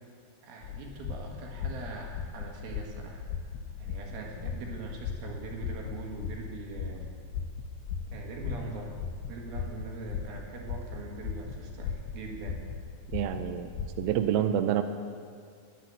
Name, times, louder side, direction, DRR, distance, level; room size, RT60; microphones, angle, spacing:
voice 1, 0.4-3.2 3.8-7.1 8.1-9.0 9.3-12.6, right 3 dB, 65° right, 0 dB, 3.4 m, -42 dB
sound 1, 0.6-14.3, left 6 dB, 80° left, 2.7 m, -38 dB
voice 2, 13.1-13.7 14.0-14.8, right 10 dB, 85° right, 8 dB, 2.2 m, -27 dB
11.0 x 10.5 x 7.8 m, 2.1 s
omnidirectional pair, 4.8 m